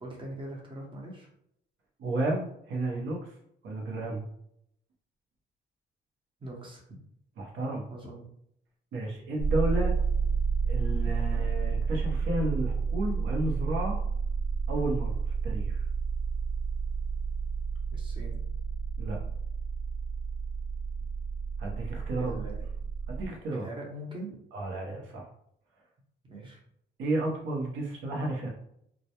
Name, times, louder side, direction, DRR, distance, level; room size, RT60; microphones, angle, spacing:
voice 1, 0.0-1.3 6.4-6.8 7.9-8.3 17.9-18.4 22.2-22.7 23.5-24.4 26.3-26.6, right 1 dB, 25° right, -1 dB, 0.8 m, -41 dB
voice 2, 2.0-3.3 3.6-4.3 7.4-7.8 8.9-9.9 10.7-14.0 14.7-15.9 19.0-19.2 21.6-22.4 23.1-23.7 24.5-25.3 27.0-28.5, right 1 dB, 80° right, -1 dB, 0.8 m, -32 dB
sound 1, 9.4-23.3, right 5 dB, 45° left, 0.4 m, -30 dB
2.2 x 2.1 x 2.8 m, 0.73 s
cardioid pair, 90°, 20 cm